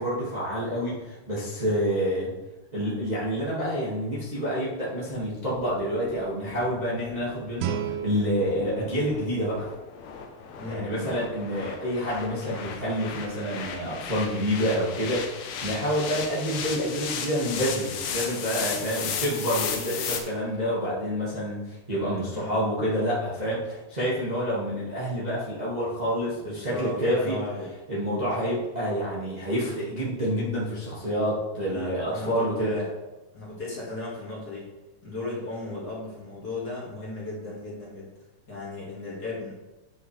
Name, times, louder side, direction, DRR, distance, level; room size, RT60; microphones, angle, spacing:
voice 1, 0.0-2.3 2.7-9.6 10.7-27.4 27.9-32.7, equal, 65° right, -8 dB, 0.4 m, -28 dB
sound 1, 5.1-20.2, left 6 dB, 85° left, 1.6 m, -35 dB
Guitar, 7.6-10.3, right 9 dB, 85° right, 2.6 m, -35 dB
voice 2, 10.6-11.1 22.3-22.6 26.4-27.7 31.7-32.9 33.3-34.7 35.0-38.1 38.5-39.5, left 2 dB, 30° left, -7 dB, 2.0 m, -35 dB
9.8 x 6.3 x 3.3 m, 1.1 s
omnidirectional pair, 4.6 m